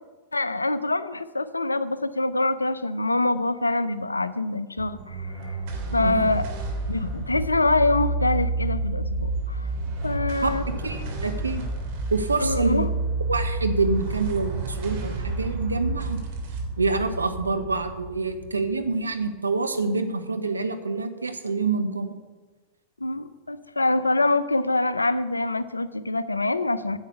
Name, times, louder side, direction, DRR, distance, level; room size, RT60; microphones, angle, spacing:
voice 1, 0.3-5.6 5.9-6.4 6.9-9.7 10.0-10.6 12.4-12.9 23.0-27.0, left 2 dB, 90° left, 14 dB, 0.6 m, -25 dB
sound 1, 4.8-19.4, right 2 dB, 55° right, 2.7 m, -30 dB
voice 2, 10.8-11.6 12.1-12.9 13.3-16.2 16.8-22.2, right 3 dB, 90° right, 7 dB, 1.0 m, -26 dB
10.0 x 8.0 x 6.8 m, 1.3 s
figure-of-eight pair, 95°, 0 cm